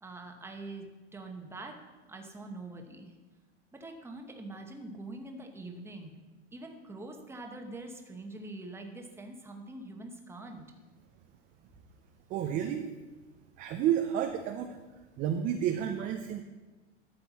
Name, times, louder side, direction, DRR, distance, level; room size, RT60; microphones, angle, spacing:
voice 1, 0.0-3.1 3.7-6.1 6.5-10.6, right 2 dB, 5° right, 4 dB, 0.9 m, -44 dB
voice 2, 12.3-12.9 13.6-14.8 15.2-16.4, right 10 dB, 20° right, 6 dB, 0.4 m, -30 dB
12.0 x 6.7 x 4.1 m, 1.3 s
hypercardioid pair, 135°, 37 cm